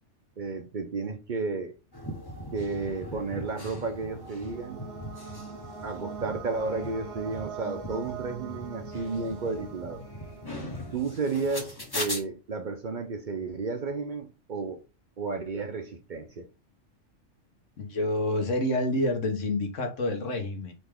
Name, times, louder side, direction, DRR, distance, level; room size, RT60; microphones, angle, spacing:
voice 1, 0.4-1.8 2.5-4.8 5.8-10.0 10.9-14.8 15.2-16.5, right 4 dB, 50° right, 0.6 m, -32 dB
sound 1, 1.9-12.2, left 1 dB, 20° left, 0.8 m, -40 dB
sound 2, 3.6-11.3, right 7 dB, 65° right, 1.2 m, -43 dB
voice 2, 17.8-20.7, left 1 dB, 85° left, 1.4 m, -28 dB
4.1 x 3.4 x 3.4 m
omnidirectional pair, 1.3 m